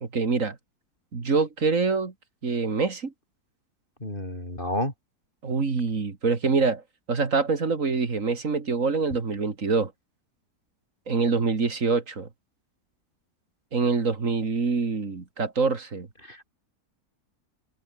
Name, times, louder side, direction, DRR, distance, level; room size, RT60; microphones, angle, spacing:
voice 1, 0.0-0.6 1.1-2.1 2.4-3.1 5.4-6.8 7.1-9.9 11.1-12.3 13.7-16.1, right 4 dB, 50° right, 2.6 m, -25 dB
voice 2, 4.0-4.9 16.2-16.5, left 1 dB, 30° left, 6.7 m, -30 dB
omnidirectional pair, 1.7 m